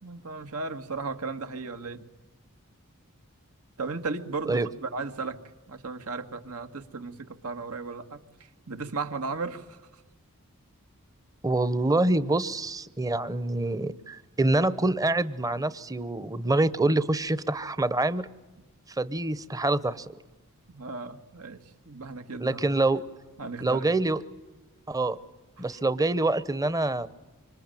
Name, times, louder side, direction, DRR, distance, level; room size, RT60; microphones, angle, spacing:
voice 1, 0.0-2.1 3.8-5.4 5.7-8.2 8.7-9.8 20.7-22.6 23.4-23.9 25.6-25.8, right 4 dB, 80° right, 8 dB, 1.8 m, -35 dB
voice 2, 11.4-18.3 19.0-20.1 22.4-23.1 23.6-24.2 24.9-25.2 25.6-27.1, right 2 dB, 15° right, 16 dB, 0.8 m, -26 dB
26.0 x 25.0 x 9.1 m, 1.1 s
head